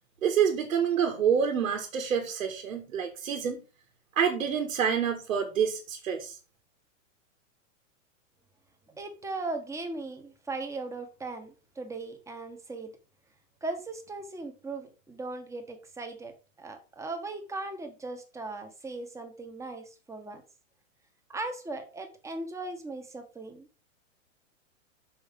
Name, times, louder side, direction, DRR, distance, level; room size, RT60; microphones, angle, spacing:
voice 1, 0.2-3.6 4.2-6.4, right 7 dB, 80° right, 1.8 m, -27 dB
voice 2, 8.9-12.9 13.6-16.3 16.6-20.4 21.3-23.7, right 2 dB, 5° right, 1.3 m, -38 dB
6.1 x 5.8 x 5.1 m
hypercardioid pair, 135°, 40 cm